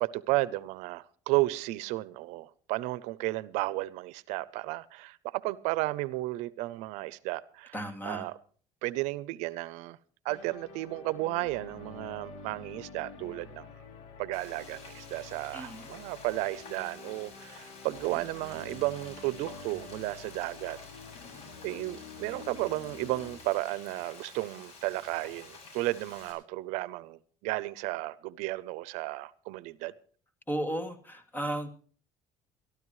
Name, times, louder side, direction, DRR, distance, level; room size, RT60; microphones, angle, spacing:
voice 1, 0.0-8.4 8.8-10.0 10.2-13.7 14.2-20.8 21.6-29.9, right 19 dB, 90° right, 0.6 m, -33 dB
voice 2, 7.7-8.3 15.5-15.9 30.5-31.7, right 1 dB, 15° left, 2.4 m, -34 dB
Monumental Synth Brass, 10.3-23.4, left 5 dB, 80° left, 2.9 m, -48 dB
Frying (food), 14.3-26.3, left 3 dB, 65° left, 7.3 m, -50 dB
22.0 x 13.0 x 3.1 m
cardioid pair, 120°, 12 cm